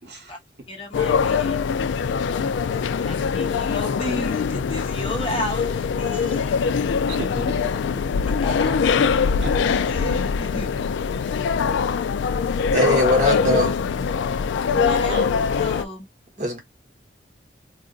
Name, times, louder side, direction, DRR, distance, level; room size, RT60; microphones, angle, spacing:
voice 1, 0.0-0.4 7.1-8.0 9.4-9.7 14.8-15.3, right 1 dB, 65° right, 1.1 m, -34 dB
voice 2, 0.7-1.6 3.0-6.5 8.3-8.8 9.9-10.7 14.7-15.1 15.6-16.1, left 1 dB, 30° left, 1.0 m, -33 dB
sound 1, 0.9-15.8, left 6 dB, 80° left, 0.3 m, -23 dB
voice 3, 12.7-13.8 16.4-16.6, equal, 40° right, 1.3 m, -20 dB
2.5 x 2.5 x 3.8 m
head